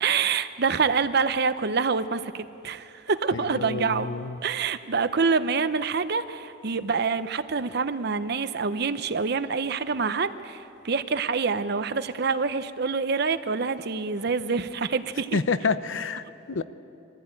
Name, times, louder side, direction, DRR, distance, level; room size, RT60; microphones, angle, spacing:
voice 1, 0.0-4.1 4.4-15.4, right 5 dB, 55° right, 12 dB, 0.7 m, -26 dB
voice 2, 3.3-4.4 15.3-16.6, left 4 dB, 75° left, 13 dB, 0.7 m, -28 dB
23.5 x 15.0 x 8.9 m, 2.8 s
head